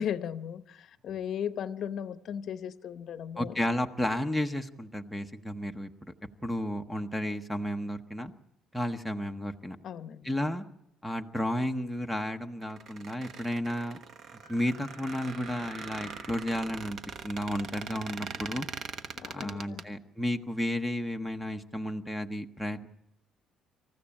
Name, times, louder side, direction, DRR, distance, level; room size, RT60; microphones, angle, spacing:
voice 1, 0.0-3.6 9.8-10.3 19.2-19.9, left 8 dB, 45° left, 11 dB, 0.9 m, -36 dB
voice 2, 3.4-6.1 6.4-8.3 8.7-9.8 10.2-10.6 11.0-14.0 14.5-17.0 17.2-18.7 19.3-22.9, equal, ahead, 8 dB, 0.8 m, -32 dB
Squeak, 12.6-19.8, right 5 dB, 40° right, 1.1 m, -42 dB
sound 1, 14.4-16.6, right 2 dB, 85° right, 7.7 m, -49 dB
26.5 x 15.0 x 8.7 m, 0.82 s
cardioid pair, 175°, 0 cm